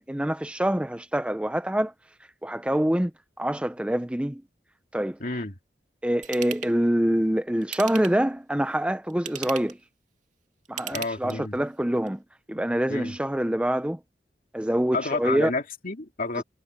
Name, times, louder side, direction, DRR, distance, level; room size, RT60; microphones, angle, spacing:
voice 1, 0.0-1.9 2.4-3.1 3.4-4.4 4.9-5.2 6.0-9.8 10.7-12.2 12.5-14.0 14.5-15.5 16.4-16.5, right 1 dB, 5° right, 0.5 m, -25 dB
voice 2, 5.2-5.5 10.9-11.6 12.9-13.1 14.9-16.4, left 3 dB, 50° left, 2.8 m, -30 dB
Ratchet pawl / Tools, 6.2-6.7 7.6-8.3 9.1-9.8 10.6-11.6 12.1-12.2, right 8 dB, 45° right, 2.2 m, -37 dB
head